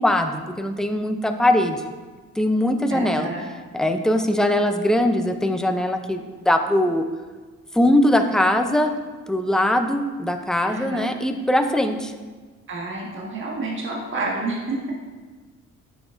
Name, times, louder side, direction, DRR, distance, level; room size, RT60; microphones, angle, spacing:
voice 1, 0.0-1.8 2.4-3.3 3.7-7.0 7.7-8.9 9.3-12.1, left 1 dB, ahead, 6 dB, 0.5 m, -21 dB
voice 2, 2.9-3.4 10.6-11.1 12.7-14.8, right 3 dB, 40° right, -3 dB, 1.5 m, -29 dB
8.6 x 6.1 x 2.5 m, 1.4 s
cardioid pair, 90°, 30 cm